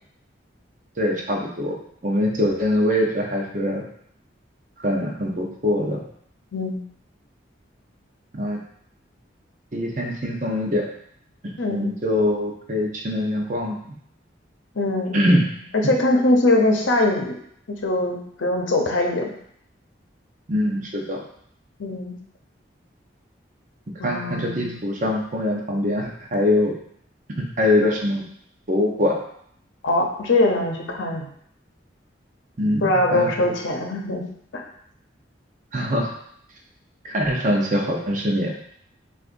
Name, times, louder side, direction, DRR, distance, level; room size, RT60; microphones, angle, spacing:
voice 1, 1.0-1.7 2.0-3.8 4.8-6.0 8.3-8.6 9.7-10.9 11.4-13.9 15.1-15.5 20.5-21.2 24.0-26.7 27.4-28.2 28.7-29.2 32.6-33.5 35.7-36.1 37.0-38.6, left 1 dB, 40° right, 0 dB, 0.7 m, -23 dB
voice 2, 11.6-11.9 14.8-15.2 15.7-17.3 17.8-19.3 21.8-22.1 24.0-24.8 29.8-31.3 32.8-34.2, left 2 dB, 85° left, 1 dB, 0.7 m, -22 dB
6.5 x 2.5 x 2.6 m, 0.67 s
head